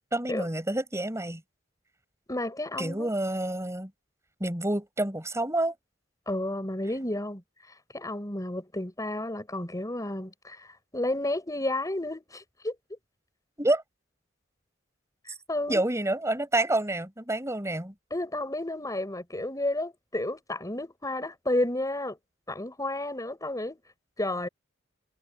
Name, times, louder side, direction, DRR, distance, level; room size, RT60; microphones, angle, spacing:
voice 1, 0.1-1.4 2.8-3.9 4.4-5.8 13.6-13.8 15.7-17.9, right 1 dB, 15° right, 6.4 m, -28 dB
voice 2, 2.3-3.1 6.3-7.4 7.9-12.7 15.3-15.8 18.1-22.2 22.5-23.8 24.2-24.5, left 1 dB, 20° left, 6.0 m, -31 dB
head